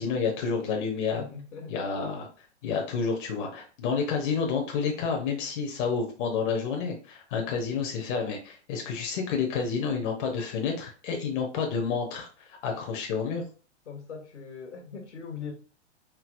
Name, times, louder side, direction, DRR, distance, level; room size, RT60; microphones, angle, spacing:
voice 1, 0.0-1.2 1.7-2.3 2.6-13.4, left 5 dB, 45° left, 2 dB, 0.9 m, -29 dB
voice 2, 1.2-1.8 13.9-15.5, left 6 dB, 75° left, 3 dB, 1.2 m, -40 dB
4.6 x 2.8 x 2.5 m, 0.38 s
hypercardioid pair, 110°, 35 cm